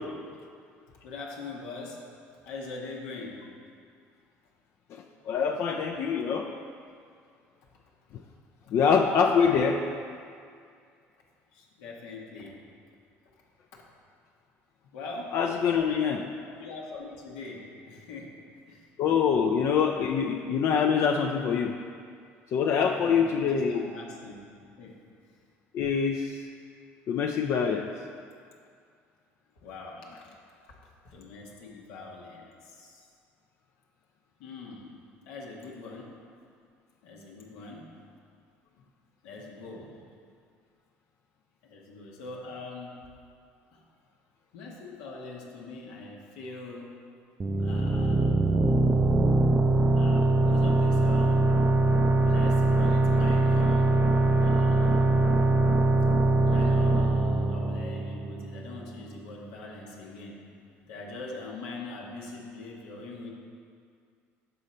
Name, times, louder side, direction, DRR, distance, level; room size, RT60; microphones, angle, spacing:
voice 1, 1.0-2.0 2.4-3.5 11.5-12.6 13.2-13.3 14.9-15.4 16.5-18.4 18.7-18.9 22.8-24.4 24.8-25.0 25.3-25.4 29.6-33.1 34.4-34.9 35.2-36.2 37.0-38.0 38.8-38.9 39.2-40.0 41.6-43.1 43.7-43.8 44.5-47.0 47.6-48.4 50.0-51.6 52.0-54.0 54.4-55.1 56.3-60.4 60.9-63.3, left 3 dB, 85° left, -2 dB, 0.9 m, -42 dB
voice 2, 4.9-6.5 8.7-9.8 15.3-16.3 19.0-21.7 22.5-23.8 25.7-26.4 27.1-27.9, left 6 dB, 60° left, 2 dB, 0.4 m, -25 dB
sound 1, 47.4-58.8, right 2 dB, 25° right, 0.4 m, -23 dB
6.7 x 4.0 x 4.2 m, 2.2 s
supercardioid pair, 90°, 5 cm